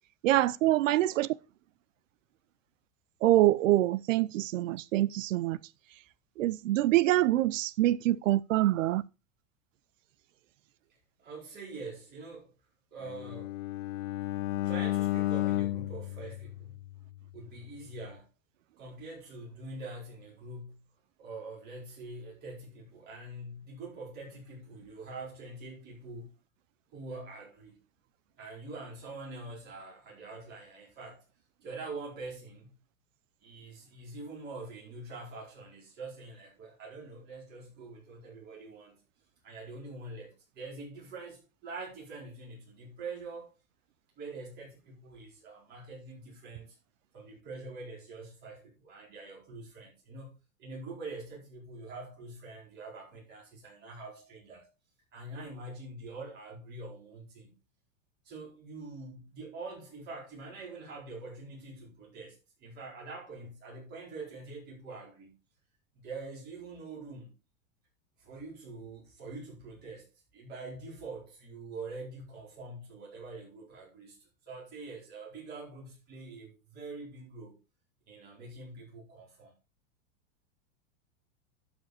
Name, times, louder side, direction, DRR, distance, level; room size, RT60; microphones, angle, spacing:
voice 1, 0.2-1.3 3.2-5.6 6.4-9.0, right 15 dB, 70° right, 0.6 m, -25 dB
voice 2, 11.2-12.5 12.9-13.6 14.6-16.8 17.3-18.3 18.8-20.8 21.2-26.3 26.9-27.8 28.4-31.2 31.6-32.8 33.4-39.0 39.4-43.5 44.2-46.7 47.1-54.6 55.1-57.5 58.2-65.4 65.9-67.3 68.2-77.5 78.1-79.5, right 3 dB, 25° right, 4.6 m, -45 dB
Bowed string instrument, 13.1-17.2, left 15 dB, 70° left, 0.5 m, -33 dB
12.0 x 5.3 x 4.2 m
supercardioid pair, 170°, 39 cm